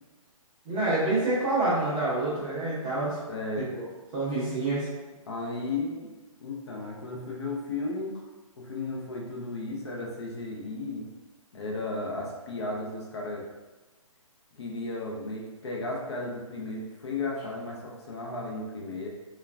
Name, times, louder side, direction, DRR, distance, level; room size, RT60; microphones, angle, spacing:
voice 1, 0.6-3.2 3.6-3.9 4.1-4.9, right 2 dB, 15° right, -10 dB, 0.5 m, -27 dB
voice 2, 3.3-3.7 5.3-6.1 6.4-8.1 8.6-11.0 11.5-13.5 14.6-19.1, left 2 dB, 50° left, -2 dB, 0.5 m, -34 dB
3.3 x 2.2 x 2.2 m, 1.2 s
hypercardioid pair, 170°, 18 cm